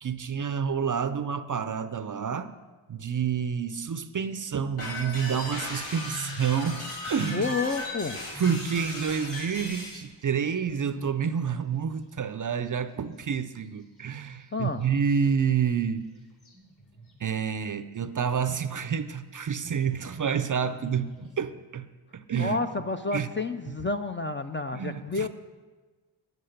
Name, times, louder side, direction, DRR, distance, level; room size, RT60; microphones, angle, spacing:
voice 1, 0.0-2.5 2.9-7.5 8.4-16.1 17.2-21.9 22.1-22.6 23.1-23.3 24.7-25.3, right 7 dB, 40° right, 12 dB, 0.4 m, -29 dB
sound 1, 4.8-10.0, left 2 dB, 90° left, 3.0 m, -37 dB
sound 2, 6.1-6.6 7.2-7.3 7.8-8.8 10.3-11.3 14.8-15.3 16.4-17.3 18.4-19.3 20.3-21.3, left 1 dB, 50° left, 2.8 m, -45 dB
voice 2, 7.3-8.2 14.5-14.8 22.4-25.3, left 3 dB, 25° left, 8 dB, 0.4 m, -30 dB
9.3 x 7.8 x 6.5 m, 1.3 s
wide cardioid pair, 95°, 49 cm